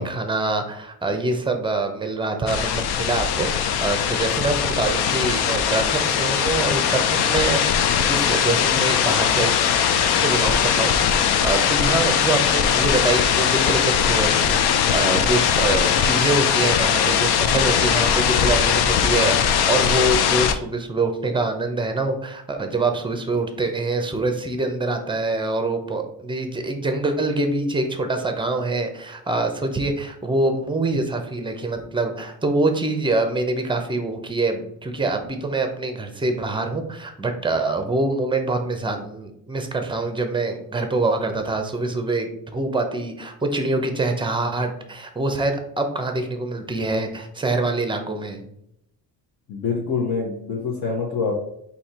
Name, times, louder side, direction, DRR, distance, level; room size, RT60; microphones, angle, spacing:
voice 1, 0.0-7.7 8.1-9.6 10.1-48.4, right 2 dB, 10° right, 6 dB, 0.6 m, -25 dB
sound 1, 2.5-20.5, left 8 dB, 65° left, 0.6 m, -20 dB
voice 2, 49.5-51.3, left 5 dB, 50° left, -3 dB, 1.0 m, -25 dB
4.2 x 2.9 x 4.2 m, 0.76 s
cardioid pair, 120°, 41 cm